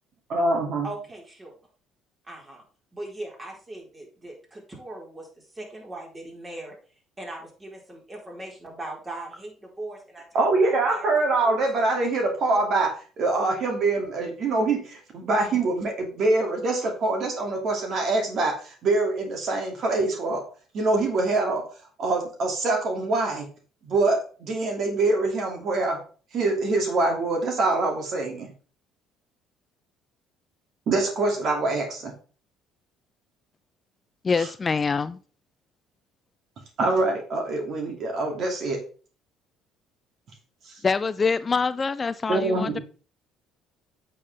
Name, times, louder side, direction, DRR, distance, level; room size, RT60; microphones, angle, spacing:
voice 1, 0.3-0.9 10.3-12.9 13.2-20.4 20.7-21.6 22.0-23.5 23.8-26.0 26.3-28.5 30.9-32.1 34.4-34.5 36.8-38.8 40.6-40.8 42.3-42.8, right 2 dB, 55° right, 2 dB, 2.6 m, -24 dB
voice 2, 0.8-1.5 2.3-2.6 2.9-5.3 5.5-6.8 7.2-11.1 11.4-11.6, right 2 dB, 25° right, -2 dB, 4.4 m, -39 dB
voice 3, 34.2-35.2 40.8-42.8, left 5 dB, 30° left, 14 dB, 0.4 m, -25 dB
8.6 x 6.8 x 3.5 m, 0.39 s
supercardioid pair, 85°, 0 cm